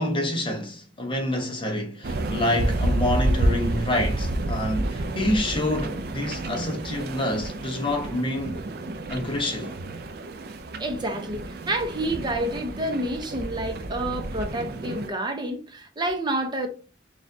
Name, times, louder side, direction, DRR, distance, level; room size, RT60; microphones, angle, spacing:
voice 1, 0.0-8.6 9.1-9.7, left 1 dB, 30° left, 0.7 m, -27 dB
sound 1, 2.0-15.1, right 1 dB, 60° right, 0.5 m, -30 dB
voice 2, 10.8-16.7, right 1 dB, 25° right, 0.7 m, -29 dB
6.1 x 2.4 x 2.6 m
head